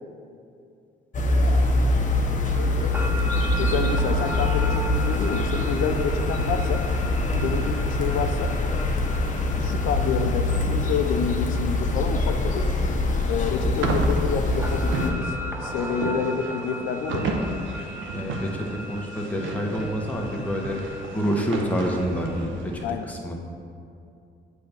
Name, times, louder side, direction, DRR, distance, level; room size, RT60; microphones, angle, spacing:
sound 1, 1.1-15.1, left 2 dB, 40° left, 0.8 m, -24 dB
sound 2, 2.5-22.4, equal, 10° right, 0.5 m, -38 dB
voice 1, 3.6-6.8 7.3-8.5 9.5-12.7 13.2-15.3 15.6-17.4 22.8-23.1, left 7 dB, 90° left, 6 dB, 0.5 m, -28 dB
sound 3, 13.8-22.8, right 3 dB, 80° right, 0.8 m, -32 dB
voice 2, 18.1-20.9 21.1-23.3, equal, 5° left, -1 dB, 1.0 m, -28 dB
7.4 x 3.4 x 5.8 m, 2.5 s
cardioid pair, 90°, 20 cm